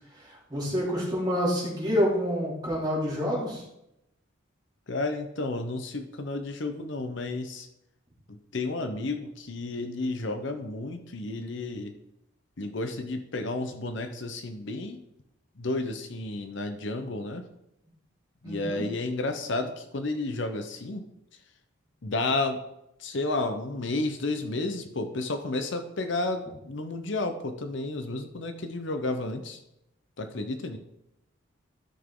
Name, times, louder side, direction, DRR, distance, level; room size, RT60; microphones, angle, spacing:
voice 1, 0.2-3.6 18.4-18.8, equal, 20° right, -5 dB, 3.1 m, -28 dB
voice 2, 4.9-7.7 8.3-11.9 12.6-15.0 15.6-17.5 18.4-21.1 22.0-22.6 23.0-29.6 30.2-30.8, left 2 dB, 60° left, 7 dB, 0.8 m, -32 dB
13.0 x 6.0 x 3.7 m, 0.83 s
head